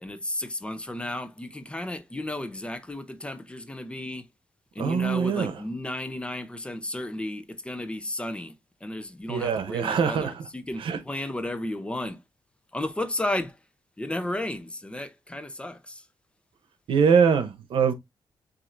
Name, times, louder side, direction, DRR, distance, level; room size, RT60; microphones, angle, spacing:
voice 1, 0.0-4.2 4.8-8.5 8.8-12.2 12.7-13.5 14.0-15.8, left 1 dB, 10° left, 0.7 m, -33 dB
voice 2, 4.8-5.6 9.3-10.5 10.8-11.3 16.9-17.9, right 6 dB, 85° right, 0.9 m, -23 dB
7.4 x 2.7 x 2.6 m
wide cardioid pair, 130°, 9 cm